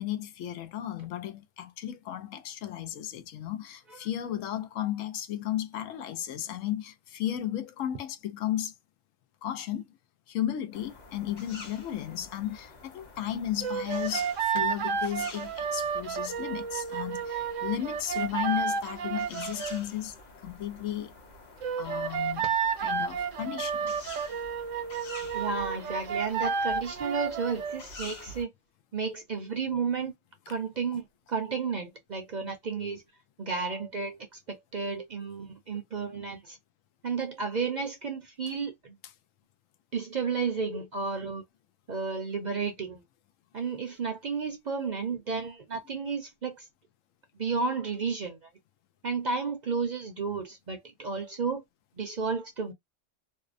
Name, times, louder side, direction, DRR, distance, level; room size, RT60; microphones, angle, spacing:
voice 1, 0.0-8.7 9.4-10.0 10.3-20.1 20.4-21.1 21.8-22.5 22.8-23.9, left 11 dB, 90° left, 1.0 m, -34 dB
sound 1, 10.7-28.4, left 2 dB, 40° left, 0.8 m, -48 dB
sound 2, 13.6-19.8 21.6-27.8, right 6 dB, 85° right, 1.0 m, -31 dB
voice 2, 25.3-28.5 28.9-30.1 30.5-33.0 33.4-36.6 37.0-39.0 39.9-41.4 41.9-43.0 43.5-46.7 47.4-48.5 49.0-51.6 52.0-52.7, right 5 dB, 50° right, 0.6 m, -32 dB
2.6 x 2.1 x 2.4 m
omnidirectional pair, 1.3 m